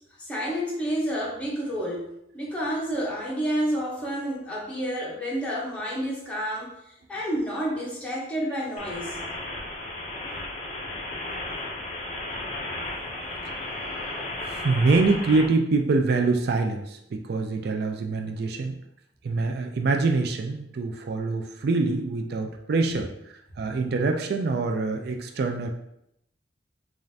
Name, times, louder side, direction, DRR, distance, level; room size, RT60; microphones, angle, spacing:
voice 1, 0.2-2.1 2.3-6.8 7.1-9.1, equal, 5° left, -6 dB, 0.8 m, -29 dB
sound 1, 8.8-15.5, left 2 dB, 40° left, 0.6 m, -34 dB
voice 2, 14.5-18.7 19.2-23.1 23.6-25.7, right 3 dB, 60° right, 4 dB, 0.4 m, -25 dB
5.0 x 2.5 x 2.7 m, 0.79 s
head